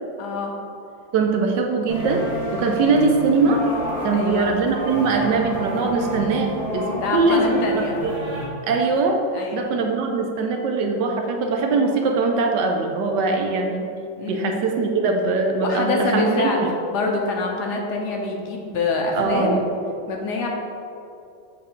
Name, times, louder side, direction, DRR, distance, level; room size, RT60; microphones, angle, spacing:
voice 1, 0.2-0.5 4.1-4.5 7.0-7.9 9.3-9.7 14.2-14.5 15.6-16.6 16.9-19.6 20.1-20.5, left 3 dB, 65° left, 0 dB, 1.3 m, -25 dB
voice 2, 1.1-2.2 2.5-3.6 4.0-8.1 8.7-9.2 9.5-13.9 14.3-16.7 19.1-19.6, right 4 dB, 75° right, 2 dB, 1.2 m, -21 dB
sound 1, 1.9-8.5, equal, 25° right, 1.0 m, -30 dB
7.2 x 3.8 x 4.4 m, 2.6 s
omnidirectional pair, 2.0 m